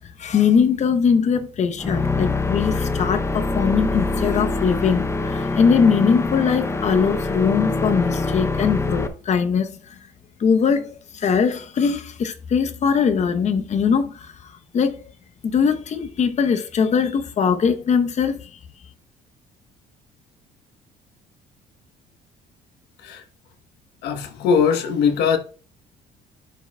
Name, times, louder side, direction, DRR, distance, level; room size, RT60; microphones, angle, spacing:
voice 1, 0.2-10.0 10.4-15.0 15.4-18.6, left 6 dB, 45° left, 0.9 m, -21 dB
sound 1, 1.8-9.1, left 3 dB, 15° left, 0.6 m, -24 dB
voice 2, 24.0-25.4, left 6 dB, 80° left, 1.1 m, -20 dB
11.5 x 4.8 x 2.3 m
cardioid pair, 110°, 17 cm